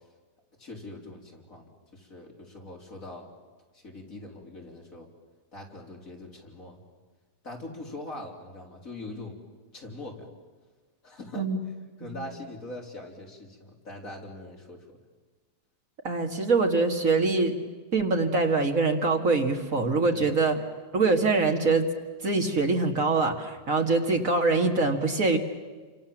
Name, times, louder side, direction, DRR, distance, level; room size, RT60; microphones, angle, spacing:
voice 1, 0.6-3.3 3.7-5.1 5.5-6.8 7.4-9.4 9.7-10.3 11.0-11.5 12.0-15.0 20.1-20.4, left 2 dB, 50° left, 0 dB, 4.5 m, -42 dB
voice 2, 16.0-17.6 17.9-20.6 20.9-21.9 22.2-25.4, right 3 dB, 50° right, 4 dB, 2.4 m, -24 dB
29.5 x 26.0 x 7.4 m, 1.4 s
omnidirectional pair, 1.8 m